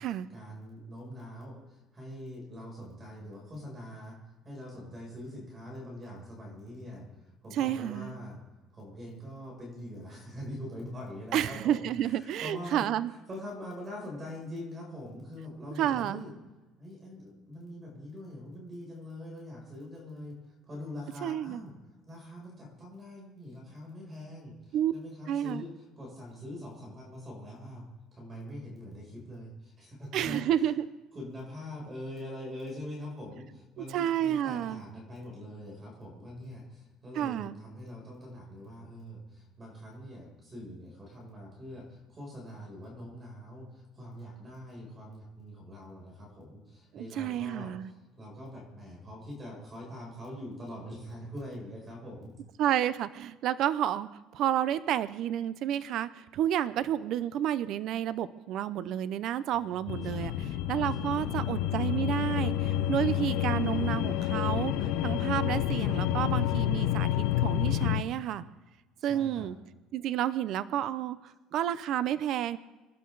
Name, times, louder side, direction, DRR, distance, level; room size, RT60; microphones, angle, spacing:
voice 1, 0.0-4.2 4.4-7.0 7.4-8.4 8.7-12.8 13.3-16.3 16.8-20.4 20.6-21.7 22.1-27.9 28.1-30.7 31.1-52.3 59.7-60.5 61.0-61.3 69.0-69.5, left 1 dB, 25° right, -1 dB, 7.2 m, -43 dB
voice 2, 7.5-8.1 11.3-13.1 15.8-16.2 21.2-21.6 24.7-24.9 25.3-25.6 30.1-30.9 33.9-34.8 37.1-37.6 46.9-47.9 52.6-68.4 69.0-69.6 69.9-72.6, right 11 dB, 55° right, 15 dB, 0.7 m, -30 dB
sound 1, 59.9-68.0, left 12 dB, 75° left, 0.9 m, -29 dB
26.5 x 11.5 x 4.0 m, 1.1 s
cardioid pair, 140°, 0 cm